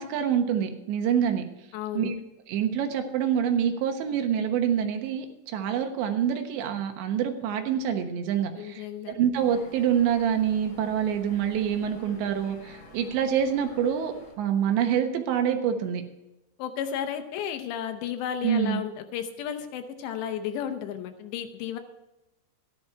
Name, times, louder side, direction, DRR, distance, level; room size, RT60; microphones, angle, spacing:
voice 1, 0.0-1.4 2.0-2.2 2.5-16.0 18.4-18.8, right 8 dB, 75° right, 6 dB, 3.4 m, -26 dB
voice 2, 1.7-2.1 8.6-9.2 16.6-21.8, left 9 dB, 75° left, 7 dB, 3.1 m, -33 dB
sound 1, 9.3-14.3, equal, 40° left, 4.1 m, -49 dB
13.5 x 10.5 x 4.5 m, 0.95 s
omnidirectional pair, 5.2 m